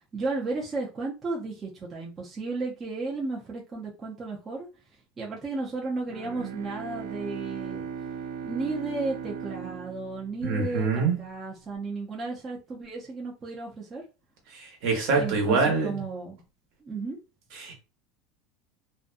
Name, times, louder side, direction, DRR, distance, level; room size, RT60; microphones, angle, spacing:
voice 1, 0.1-4.7 5.2-7.9 8.4-14.0 15.1-16.4 16.8-17.2, right 3 dB, 20° right, 0.6 m, -34 dB
Bowed string instrument, 6.1-11.0, right 7 dB, 80° right, 0.6 m, -38 dB
voice 2, 10.4-11.1 14.8-16.0 17.6-17.7, right 4 dB, 60° right, 1.1 m, -24 dB
2.5 x 2.2 x 2.5 m
supercardioid pair, 145°, 0 cm